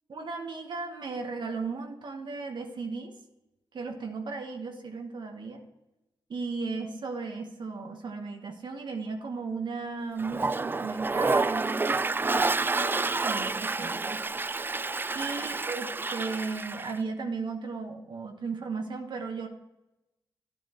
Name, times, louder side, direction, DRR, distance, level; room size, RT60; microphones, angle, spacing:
voice 1, 0.1-3.1 3.7-5.6 6.3-12.2 12.8-14.2 15.1-19.5, right 4 dB, 60° right, 4 dB, 1.2 m, -36 dB
Toilet flush, 10.2-17.0, right 3 dB, 25° right, 0.3 m, -29 dB
10.5 x 9.0 x 3.0 m, 0.95 s
supercardioid pair, 50°, 9 cm